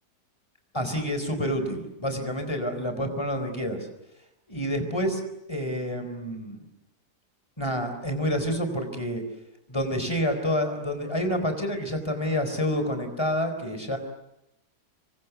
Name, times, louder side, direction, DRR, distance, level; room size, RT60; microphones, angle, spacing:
voice 1, 0.7-3.9 4.5-5.2 5.5-6.6 7.6-9.2 9.7-14.0, equal, 15° left, 7 dB, 4.3 m, -28 dB
27.0 x 23.5 x 8.3 m, 0.90 s
omnidirectional pair, 1.8 m